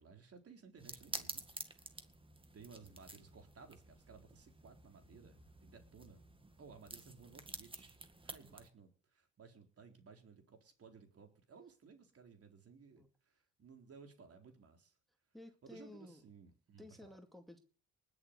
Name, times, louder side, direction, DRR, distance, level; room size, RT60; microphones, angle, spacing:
voice 1, 0.0-1.9 2.5-6.2 6.6-8.0 8.2-14.9 15.6-17.1, right 5 dB, 50° right, 5 dB, 3.9 m, -58 dB
sound 1, 0.8-8.7, right 2 dB, 15° right, 2.0 m, -51 dB
voice 2, 15.3-16.2 16.8-17.6, left 1 dB, ahead, 5 dB, 2.3 m, -55 dB
19.5 x 7.2 x 8.2 m, 0.42 s
cardioid pair, 90°, 30 cm